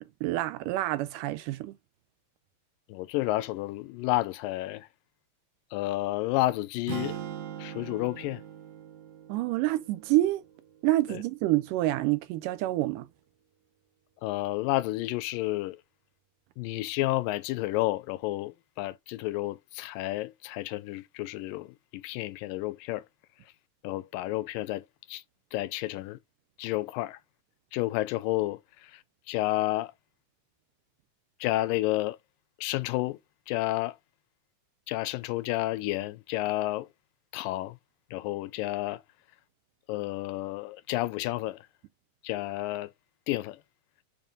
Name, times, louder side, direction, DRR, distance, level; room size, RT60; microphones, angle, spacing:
voice 1, 0.2-1.7 9.3-10.4 10.8-13.1, right 16 dB, 80° right, 2.0 m, -27 dB
voice 2, 2.9-4.9 5.7-7.2 7.6-8.4 11.1-11.2 14.2-15.8 16.6-23.0 23.8-25.2 25.5-26.2 26.6-27.2 27.7-29.0 29.3-29.9 31.4-32.2 32.6-33.2 33.5-34.0 34.9-36.9 37.3-37.8 38.1-39.0 39.9-41.7 42.2-42.9 43.3-43.6, left 17 dB, 85° left, 2.2 m, -31 dB
sound 1, 6.9-11.0, right 10 dB, 65° right, 1.9 m, -41 dB
7.1 x 2.7 x 5.2 m
omnidirectional pair, 4.0 m